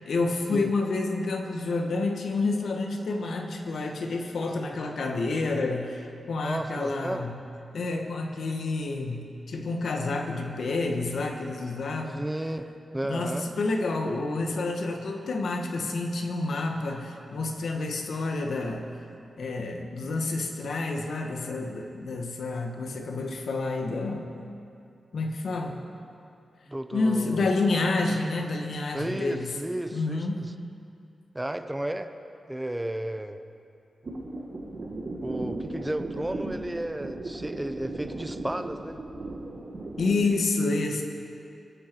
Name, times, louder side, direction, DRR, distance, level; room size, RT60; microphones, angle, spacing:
voice 1, 0.0-7.4 7.7-12.3 13.0-18.9 19.4-24.3 25.1-25.8 26.9-29.6 29.9-30.4 40.0-41.0, left 3 dB, 75° left, 3 dB, 1.4 m, -29 dB
voice 2, 6.4-7.2 12.1-12.6 12.9-13.5 26.7-27.5 28.9-30.2 31.3-32.1 32.5-33.4 35.2-39.0, right 1 dB, 10° right, 8 dB, 0.7 m, -33 dB
sound 1, 34.0-40.2, right 2 dB, 45° right, 1.7 m, -36 dB
23.0 x 7.8 x 4.6 m, 2.5 s
wide cardioid pair, 120°, 0 cm